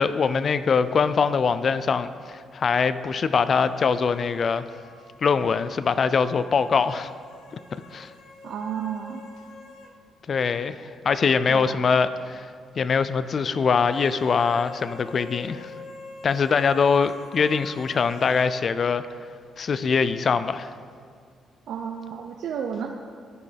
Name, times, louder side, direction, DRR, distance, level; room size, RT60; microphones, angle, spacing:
voice 1, 0.0-4.7 5.2-7.1 7.9-8.1 10.3-12.5 12.8-15.7 16.2-19.1 19.6-20.7, left 5 dB, 45° left, 13 dB, 0.3 m, -23 dB
sound 1, 3.4-10.0 10.3-10.4 13.4-18.5, left 3 dB, 75° left, 0.7 m, -45 dB
voice 2, 8.4-9.2 11.5-11.8 21.7-22.9, right 7 dB, 75° right, 3 dB, 0.5 m, -32 dB
13.5 x 5.3 x 3.4 m, 2.1 s
cardioid pair, 90°, 0 cm